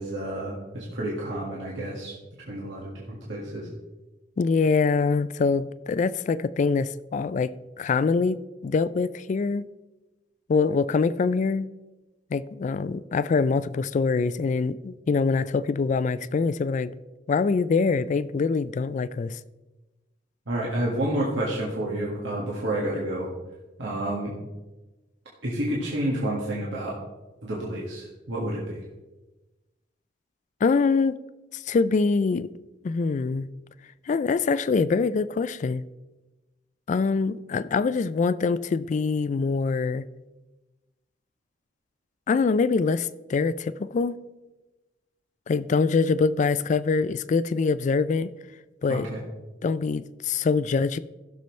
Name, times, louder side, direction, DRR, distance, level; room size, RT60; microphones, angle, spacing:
voice 1, 0.0-2.1 2.5-3.7 20.5-23.3 23.8-24.3 25.4-27.0 27.4-28.8 48.9-49.2, right 1 dB, 80° right, 1.8 m, -29 dB
voice 2, 4.4-9.6 10.5-11.7 12.3-16.9 17.3-19.4 30.6-31.2 31.5-32.5 32.8-33.5 34.1-35.8 36.9-40.0 42.3-44.2 45.5-48.3 48.8-49.1 49.6-51.0, left 4 dB, 40° left, 0.3 m, -24 dB
15.5 x 6.7 x 3.2 m
head